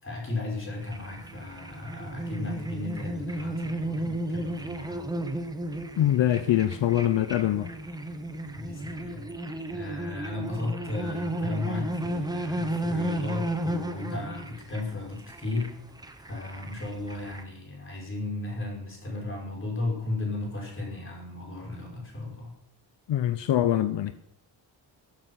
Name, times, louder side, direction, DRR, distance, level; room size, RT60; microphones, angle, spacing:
voice 1, 0.0-5.1 8.6-9.3 9.7-15.7 16.3-22.5, left 2 dB, 30° left, 5.4 m, -35 dB
sound 1, 0.8-17.4, right 1 dB, 10° right, 1.1 m, -34 dB
voice 2, 6.0-7.7 23.1-24.1, left 12 dB, 75° left, 0.9 m, -24 dB
14.0 x 13.0 x 5.9 m
wide cardioid pair, 175°, 43 cm